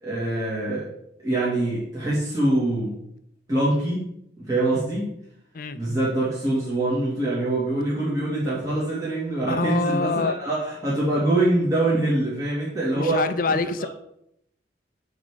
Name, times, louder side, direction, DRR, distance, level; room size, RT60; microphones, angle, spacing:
voice 1, 0.0-0.9 1.2-3.0 3.5-4.0 4.4-5.1 5.7-13.2 13.8-13.9, right 1 dB, 20° right, -9 dB, 2.3 m, -24 dB
voice 2, 9.5-10.3 12.9-13.9, left 4 dB, 50° left, 12 dB, 0.5 m, -25 dB
9.3 x 3.7 x 5.0 m, 0.75 s
head